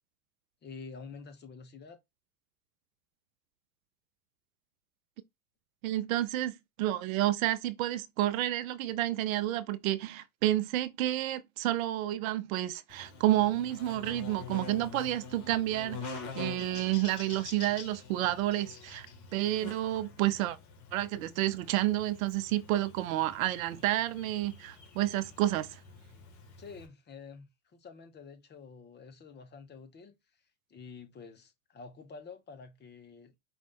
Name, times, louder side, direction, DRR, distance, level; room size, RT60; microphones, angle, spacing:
voice 1, 0.6-2.0 26.6-30.1 30.7-33.4, left 5 dB, 25° left, 1.0 m, -48 dB
voice 2, 5.8-19.1 19.3-20.6 20.9-25.8, right 14 dB, 65° right, 0.7 m, -30 dB
Buzz, 12.9-26.9, left 5 dB, 40° left, 1.9 m, -46 dB
5.2 x 2.5 x 3.6 m
hypercardioid pair, 100°, 44 cm